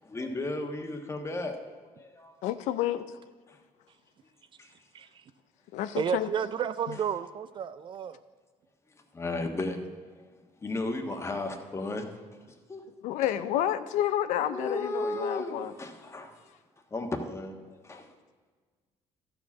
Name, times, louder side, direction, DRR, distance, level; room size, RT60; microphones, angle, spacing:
voice 1, 0.0-2.4 3.5-3.6 4.6-4.7 9.1-10.3 10.6-12.0 12.5-12.8 13.2-13.3 14.4-16.4 16.9-18.1, left 2 dB, 20° left, 1.4 m, -35 dB
voice 2, 2.4-3.0 5.7-6.3 6.9-7.0 13.0-15.7, left 12 dB, 80° left, 0.5 m, -30 dB
voice 3, 5.9-8.2, right 8 dB, 40° right, 0.4 m, -31 dB
13.0 x 4.9 x 7.1 m
cardioid pair, 100°, 12 cm